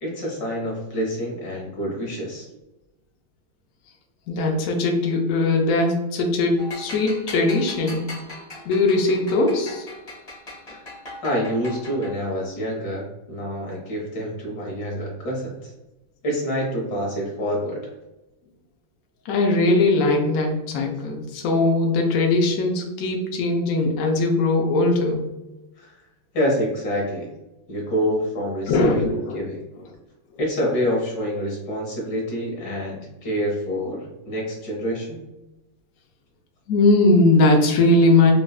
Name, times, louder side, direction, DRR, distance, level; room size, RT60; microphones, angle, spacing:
voice 1, 0.0-2.5 10.7-10.8 11.2-15.7 16.2-17.8 25.8-26.0 26.3-27.3 27.7-29.1 29.3-29.6 30.4-35.2, equal, 60° left, -3 dB, 1.5 m, -27 dB
voice 2, 4.3-8.0 8.7-9.9 19.3-25.3 28.7-29.4 36.7-38.3, left 2 dB, 90° left, 1 dB, 0.7 m, -20 dB
sound 1, 6.6-12.4, left 1 dB, 35° left, 0.7 m, -39 dB
3.8 x 2.2 x 2.3 m, 0.99 s
omnidirectional pair, 2.1 m